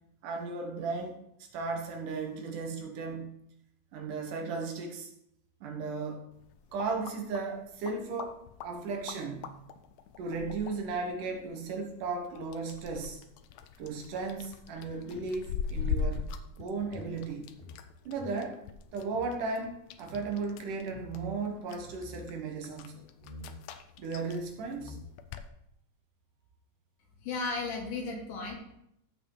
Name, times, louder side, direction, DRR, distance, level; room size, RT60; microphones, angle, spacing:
voice 1, 0.2-3.3 3.9-5.1 5.6-6.2 6.7-8.4 8.6-9.6 10.2-13.2 13.8-16.3 16.6-17.5 18.1-18.6 18.9-23.0 24.0-25.0, right 4 dB, 70° right, 2 dB, 2.8 m, -35 dB
sound 1, 6.3-25.5, left 6 dB, 85° left, 1.5 m, -42 dB
sound 2, 16.9-19.3 19.6-19.7 20.0-20.3 20.9-21.3 21.7-22.2 23.2-23.6 24.4-24.5 24.7-25.3, left 2 dB, 50° right, 4.1 m, -47 dB
voice 2, 27.2-28.5, left 3 dB, 70° left, 0 dB, 3.5 m, -34 dB
14.5 x 5.9 x 4.0 m, 0.78 s
omnidirectional pair, 3.9 m